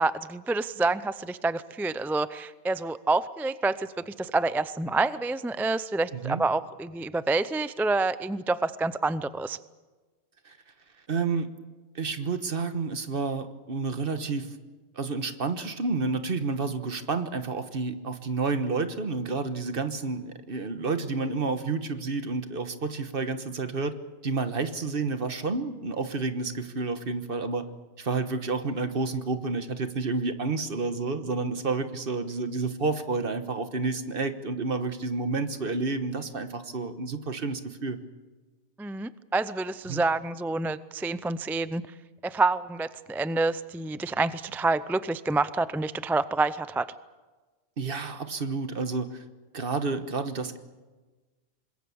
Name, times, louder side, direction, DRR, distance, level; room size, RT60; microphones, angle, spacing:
voice 1, 0.0-9.6 38.8-41.8 42.2-46.9, right 3 dB, 5° right, 14 dB, 0.4 m, -28 dB
voice 2, 6.1-6.4 10.4-10.6 11.1-11.5 11.9-14.5 15.0-23.9 24.2-27.7 28.0-38.0 39.9-40.0 47.8-49.2 49.5-50.6, right 4 dB, 60° right, 9 dB, 1.5 m, -30 dB
25.5 x 21.0 x 7.1 m, 1.3 s
omnidirectional pair, 1.1 m